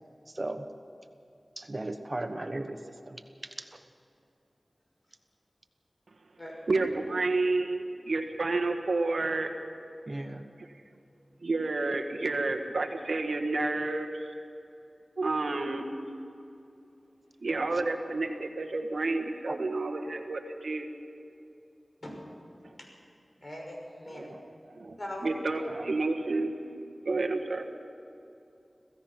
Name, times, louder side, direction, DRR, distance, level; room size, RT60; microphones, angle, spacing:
voice 1, 0.3-0.7 1.6-3.8 10.1-10.5 19.5-19.6, right 2 dB, 40° right, 7 dB, 1.2 m, -37 dB
voice 2, 6.7-9.6 10.6-10.8 11.4-14.3 15.2-16.1 17.4-20.9 22.6-22.8 24.1-27.7, right 3 dB, 85° right, 4 dB, 1.5 m, -30 dB
voice 3, 23.4-24.3 25.0-25.3, left 1 dB, 45° left, 0 dB, 5.9 m, -40 dB
26.5 x 16.5 x 6.0 m, 2.8 s
wide cardioid pair, 50°, 0 cm